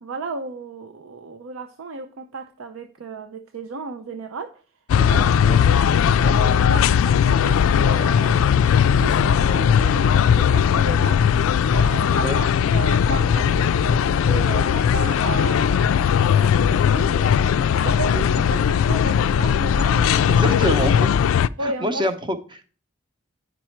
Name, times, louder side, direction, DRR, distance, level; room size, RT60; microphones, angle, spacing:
voice 1, 0.0-4.6 5.1-5.7 6.1-8.7 9.0-11.4 11.7-20.5 21.6-22.1, right 3 dB, 85° right, 7 dB, 0.6 m, -34 dB
sound 1, 4.9-21.5, left 8 dB, 75° left, 0.3 m, -18 dB
voice 2, 20.3-21.1 21.6-22.7, equal, 25° right, 8 dB, 0.8 m, -26 dB
10.0 x 5.3 x 4.4 m, 0.39 s
head